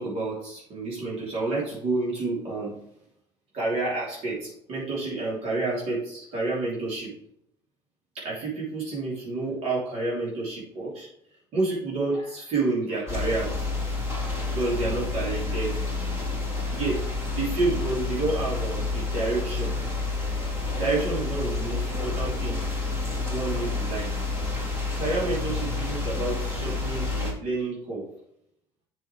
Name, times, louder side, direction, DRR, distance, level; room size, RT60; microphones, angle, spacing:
voice 1, 0.0-2.7 3.5-7.1 8.1-11.1 11.5-13.7 14.5-16.1 16.7-19.8 20.4-20.5 20.7-22.6 23.3-24.1 25.0-28.0, right 3 dB, 60° right, -6 dB, 3.1 m, -29 dB
sound 1, 13.1-27.3, left 3 dB, 25° right, 3.2 m, -29 dB
7.8 x 6.3 x 3.2 m, 0.75 s
cardioid pair, 130°, 11 cm